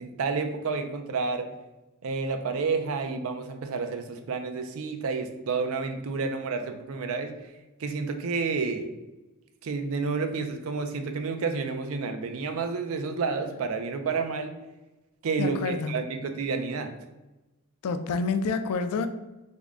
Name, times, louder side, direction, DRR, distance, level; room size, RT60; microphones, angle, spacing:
voice 1, 0.0-1.5 2.0-7.3 7.8-8.9 9.6-14.6 15.2-16.9, right 4 dB, 70° right, 0.4 m, -30 dB
voice 2, 15.4-15.9 17.8-19.1, left 4 dB, 90° left, 0.3 m, -28 dB
3.5 x 2.1 x 3.5 m
head